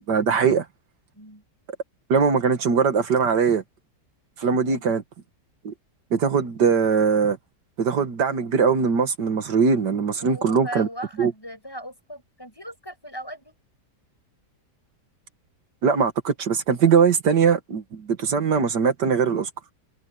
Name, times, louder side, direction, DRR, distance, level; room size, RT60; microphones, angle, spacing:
voice 1, 0.1-0.7 2.1-3.6 4.4-5.0 5.6-5.7 6.1-7.4 7.8-10.9 11.2-11.3 15.8-19.5, right 6 dB, 80° right, 2.2 m, -21 dB
voice 2, 10.2-13.6, equal, 15° left, 7.0 m, -38 dB
omnidirectional pair, 1.8 m